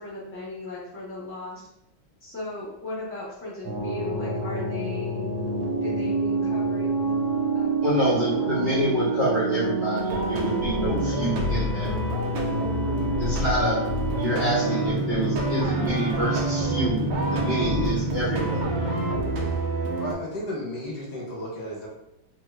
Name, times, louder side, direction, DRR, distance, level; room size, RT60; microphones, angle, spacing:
voice 1, 0.0-1.6 2.2-5.3 5.8-7.0 7.5-7.7 8.0-8.5, left 2 dB, 20° left, -9 dB, 0.3 m, -36 dB
sound 1, 3.6-19.2, right 2 dB, 70° right, 1.2 m, -27 dB
voice 2, 7.8-11.9 13.2-13.8 14.2-18.6, equal, 35° right, -9 dB, 0.9 m, -27 dB
sound 2, 9.9-20.1, right 2 dB, 85° right, 0.7 m, -30 dB
voice 3, 20.0-21.9, left 1 dB, 65° left, -3 dB, 1.2 m, -34 dB
3.1 x 2.4 x 3.1 m, 0.84 s
omnidirectional pair, 2.1 m